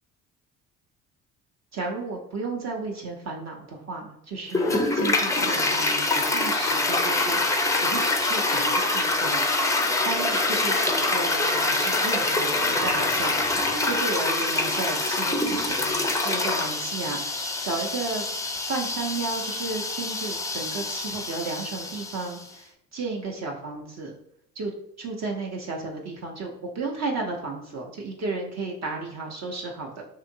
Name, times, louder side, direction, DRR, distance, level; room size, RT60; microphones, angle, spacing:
voice 1, 1.7-7.5 7.8-9.5 10.0-18.2 18.7-24.1 24.6-24.7 25.0-30.0, right 3 dB, 40° right, 1 dB, 0.6 m, -33 dB
Toilet flush, 4.5-22.4, left 2 dB, 10° left, 0.4 m, -25 dB
2.7 x 2.4 x 2.6 m, 0.80 s
hypercardioid pair, 60°, 40 cm